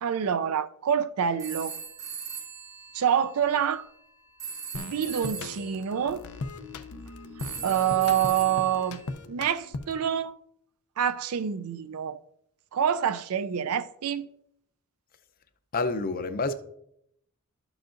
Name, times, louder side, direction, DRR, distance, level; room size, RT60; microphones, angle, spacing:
voice 1, 0.0-1.7 2.9-3.9 4.7-6.2 7.6-9.0 9.3-10.3 11.0-12.2 12.7-14.3, right 8 dB, 75° right, 0.4 m, -26 dB
sound 1, 1.4-3.6 4.4-5.8 7.4-9.1, right 6 dB, 15° right, 0.8 m, -39 dB
sound 2, 4.7-10.1, left 3 dB, 85° left, 0.6 m, -39 dB
voice 2, 15.7-16.5, left 3 dB, 40° left, 0.6 m, -28 dB
12.0 x 7.0 x 2.5 m
head